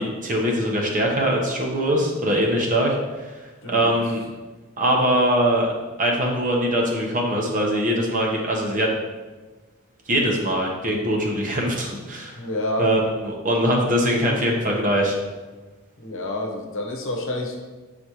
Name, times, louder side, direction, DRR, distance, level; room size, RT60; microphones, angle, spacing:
voice 1, 0.0-3.4 3.7-4.2 4.8-5.7 6.0-8.9 10.1-12.4 12.8-15.2, equal, 40° right, -1 dB, 1.1 m, -22 dB
voice 2, 3.6-3.9 12.4-12.9 16.0-17.6, left 1 dB, 65° left, 2 dB, 0.9 m, -28 dB
8.2 x 4.1 x 3.1 m, 1.2 s
head